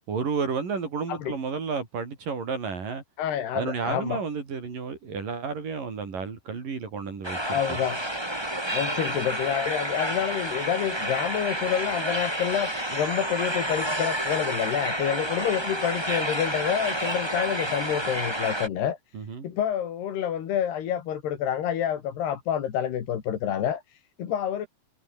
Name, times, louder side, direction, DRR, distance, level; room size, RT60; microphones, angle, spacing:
voice 1, 0.1-3.0 3.5-7.8 19.1-19.5, right 5 dB, 60° right, 5.8 m, -31 dB
voice 2, 3.2-4.2 7.5-8.0 8.7-19.0 19.4-24.7, left 9 dB, 90° left, 4.6 m, -28 dB
sound 1, 7.2-18.7, right 1 dB, 5° right, 4.2 m, -30 dB
omnidirectional pair, 4.5 m